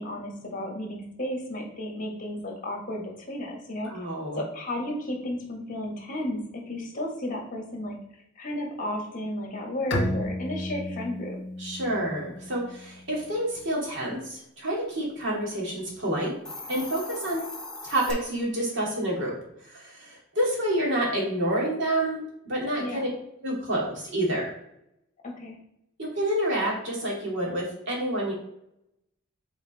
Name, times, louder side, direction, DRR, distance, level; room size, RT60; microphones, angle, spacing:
voice 1, 0.0-3.9 4.4-8.0 8.3-11.4 22.8-23.1 25.2-25.5, left 1 dB, 40° left, 0 dB, 1.6 m, -33 dB
voice 2, 3.9-4.4 11.6-16.4 16.7-17.4 17.8-23.1 23.4-24.5 26.0-28.3, right 1 dB, 65° right, -3 dB, 2.3 m, -28 dB
Bowed string instrument, 9.9-13.4, left 1 dB, 60° left, 1.1 m, -33 dB
Hiss, 16.3-18.1, left 2 dB, 5° left, 0.9 m, -39 dB
5.6 x 4.2 x 4.1 m, 0.79 s
head